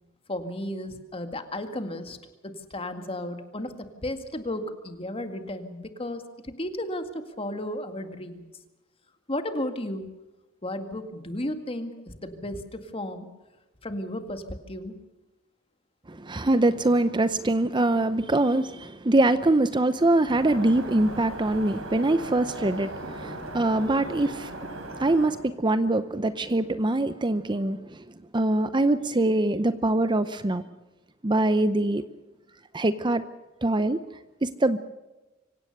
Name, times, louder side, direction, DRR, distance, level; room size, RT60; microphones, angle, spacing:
voice 1, 0.3-2.2 2.4-8.5 9.3-10.1 10.6-13.3 13.8-15.0, left 1 dB, 30° left, 2.0 m, -34 dB
voice 2, 16.1-24.5 25.0-28.0 28.3-30.6 31.2-32.0 32.7-33.2 33.6-34.0 34.4-34.8, right 2 dB, 25° right, 0.7 m, -23 dB
sound 1, 20.3-25.3, right 2 dB, 80° right, 4.1 m, -38 dB
25.5 x 17.0 x 6.6 m
head